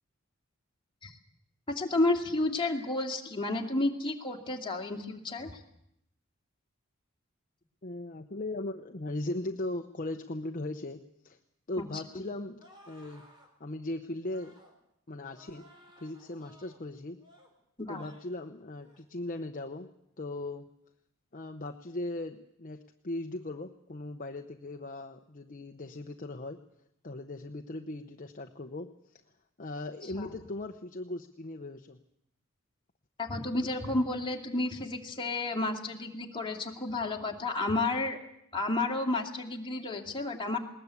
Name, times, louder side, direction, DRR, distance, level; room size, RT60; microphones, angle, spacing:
voice 1, 1.7-5.6 11.8-12.2 17.8-18.0 30.0-30.3 33.2-38.2 38.5-40.6, left 2 dB, 25° left, 1 dB, 2.4 m, -31 dB
voice 2, 7.8-11.4 11.7-13.2 13.6-14.5 15.1-15.6 16.0-17.2 17.9-19.9 20.2-20.7 21.3-26.6 27.0-28.9 29.6-32.0, left 2 dB, 40° left, 5 dB, 0.9 m, -38 dB
sound 1, 12.6-13.5 14.2-14.8 15.2-16.8 17.2-17.5 17.9-18.3 18.7-19.1, equal, 20° right, 4.7 m, -58 dB
20.5 x 20.0 x 8.3 m, 0.77 s
head